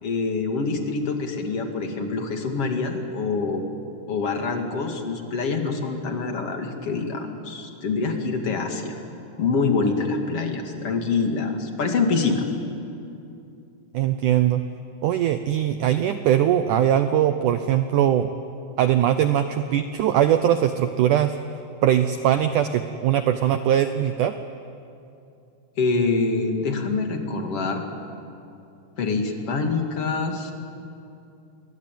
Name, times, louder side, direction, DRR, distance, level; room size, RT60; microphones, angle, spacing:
voice 1, 0.0-3.6 4.1-9.0 9.4-12.4 25.8-27.8 29.0-30.5, left 4 dB, 40° left, 4 dB, 2.8 m, -25 dB
voice 2, 13.9-14.6 15.0-18.3 18.8-21.3 21.8-24.3, right 10 dB, 90° right, 9 dB, 1.7 m, -21 dB
29.0 x 22.5 x 9.2 m, 2.6 s
omnidirectional pair, 4.7 m